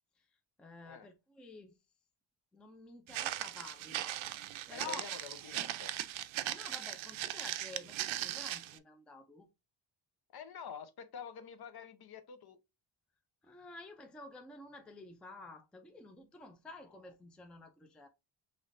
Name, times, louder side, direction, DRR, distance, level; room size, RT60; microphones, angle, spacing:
voice 1, 0.6-1.7 2.5-4.2 4.7-5.0 6.5-9.5 13.4-18.1, left 3 dB, ahead, 0.4 m, -50 dB
Walk footsteps, 3.1-8.8, right 13 dB, 80° right, 0.5 m, -39 dB
voice 2, 4.7-5.9 10.3-12.6 16.9-17.0, left 7 dB, 55° left, 0.7 m, -48 dB
5.4 x 3.2 x 2.5 m
wide cardioid pair, 175°, 46 cm